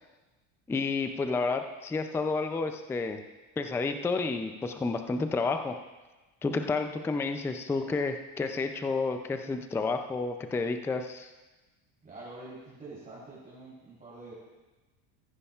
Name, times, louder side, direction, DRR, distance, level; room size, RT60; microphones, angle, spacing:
voice 1, 0.7-3.2 3.6-5.8 6.4-11.3, left 3 dB, 5° left, 7 dB, 0.3 m, -30 dB
voice 2, 12.0-14.3, right 2 dB, 20° right, -8 dB, 3.6 m, -46 dB
14.5 x 10.5 x 2.4 m, 1.2 s
supercardioid pair, 120°, 42 cm